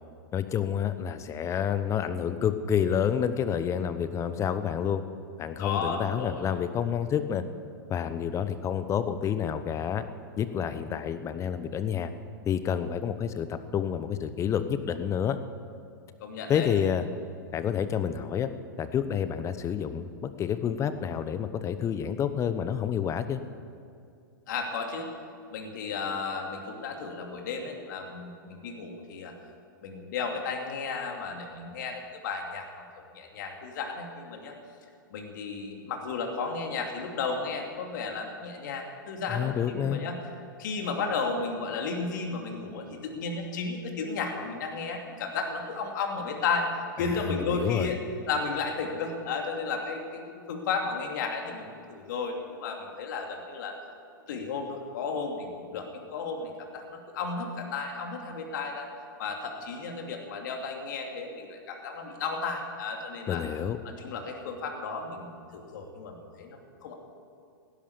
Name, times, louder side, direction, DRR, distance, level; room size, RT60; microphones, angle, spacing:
voice 1, 0.3-5.0 5.4-7.4 7.9-10.1 10.4-12.1 12.4-15.4 16.5-17.1 17.5-18.5 18.8-23.4 39.3-40.0 47.0-47.9 63.3-63.8, left 8 dB, 25° left, 11 dB, 0.9 m, -29 dB
voice 2, 5.6-6.5 16.2-16.7 24.5-25.1 25.5-29.3 29.8-32.7 33.0-34.5 35.1-40.2 40.6-46.7 47.0-48.0 48.3-53.8 54.3-58.9 59.2-63.4 63.8-66.9, left 4 dB, 60° left, 2 dB, 2.6 m, -33 dB
16.5 x 11.5 x 7.1 m, 2.4 s
hypercardioid pair, 105°, 11 cm